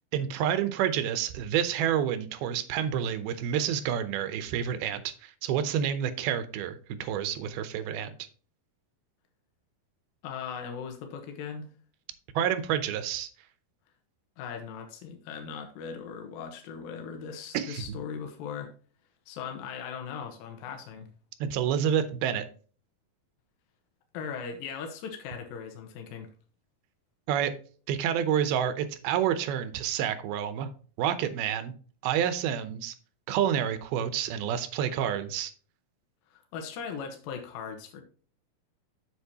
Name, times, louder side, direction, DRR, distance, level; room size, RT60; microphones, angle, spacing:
voice 1, 0.1-6.8 7.0-8.1 12.4-13.3 17.5-18.0 21.4-22.4 27.3-27.5 27.9-30.7 31.0-31.7 32.0-32.9 33.3-35.5, right 9 dB, 85° right, 11 dB, 2.7 m, -28 dB
voice 2, 10.2-11.7 14.4-18.7 19.3-21.1 24.1-26.3 36.3-38.0, left 6 dB, 75° left, 4 dB, 2.8 m, -39 dB
8.1 x 7.3 x 2.8 m, 0.41 s
omnidirectional pair, 4.3 m